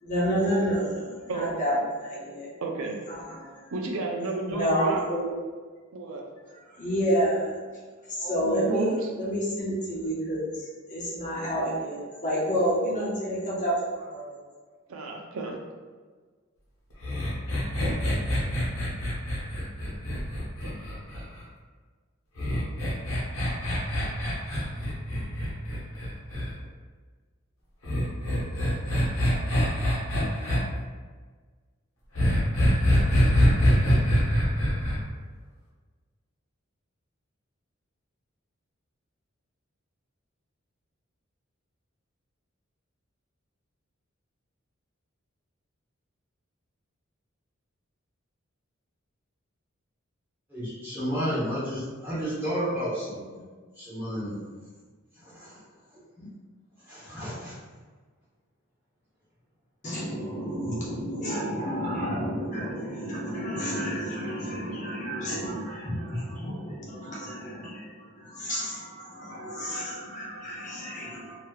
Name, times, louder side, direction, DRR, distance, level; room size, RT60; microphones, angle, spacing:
voice 1, 0.0-2.5 3.1-3.7 4.5-5.2 6.7-7.5 8.1-8.9 9.2-14.4 59.8-71.4, equal, 40° left, -6 dB, 1.0 m, -30 dB
voice 2, 2.6-2.9 3.7-5.0 5.9-6.2 8.2-9.0 14.9-15.6, right 3 dB, 85° right, 0 dB, 0.5 m, -32 dB
sound 1, 17.0-21.4 22.4-26.5 27.8-30.6 32.1-35.0, equal, 85° left, 1.0 m, -24 dB
voice 3, 50.5-53.4 53.7-54.4 55.2-55.6 56.2-56.3 56.9-57.5 60.6-60.9 61.9-62.2 65.8-66.5, equal, 10° right, -12 dB, 1.3 m, -32 dB
3.1 x 2.9 x 2.3 m, 1.5 s
head